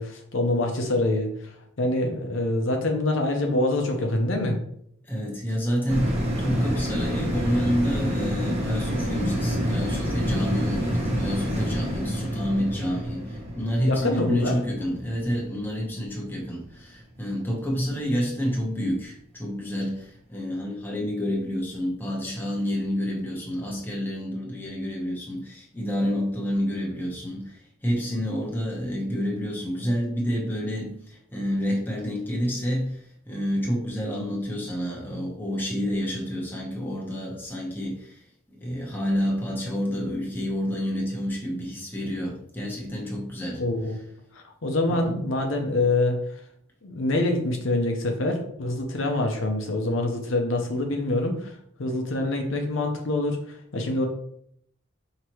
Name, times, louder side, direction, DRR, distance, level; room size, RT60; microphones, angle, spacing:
voice 1, 0.0-4.6 13.9-14.6 43.6-44.0 44.3-46.4 46.8-54.1, left 2 dB, 70° left, 3 dB, 0.7 m, -25 dB
voice 2, 5.0-38.2 38.5-43.6 44.9-45.2, equal, 10° left, -3 dB, 0.9 m, -29 dB
sound 1, 5.9-16.6 17.0-17.1, equal, 30° right, 0.9 m, -28 dB
4.8 x 2.9 x 3.0 m, 0.69 s
head